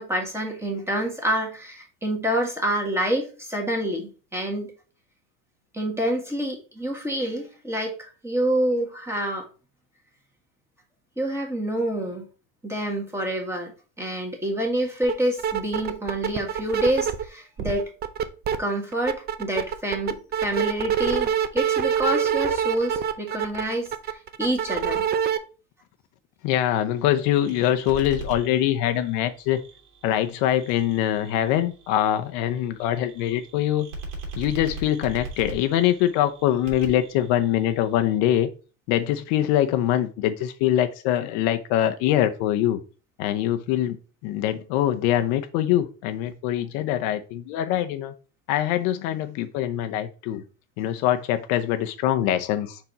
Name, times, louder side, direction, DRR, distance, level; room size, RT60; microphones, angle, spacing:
voice 1, 0.0-4.7 5.7-9.5 11.2-12.3 12.6-13.7 14.0-17.9 18.6-25.0, right 1 dB, 5° right, 1.6 m, -27 dB
sound 1, 15.0-15.1 15.4-17.2 17.6-18.6 18.9-25.4, right 8 dB, 25° right, 0.4 m, -25 dB
voice 2, 26.4-29.6 30.0-33.9 34.4-38.5 38.9-42.8 43.2-44.0 44.2-48.1 48.5-50.4 50.8-52.8, left 12 dB, 65° left, 0.7 m, -23 dB
sound 2, 26.9-38.2, right 2 dB, 85° right, 3.1 m, -41 dB
5.2 x 4.5 x 4.1 m
supercardioid pair, 125°, 40 cm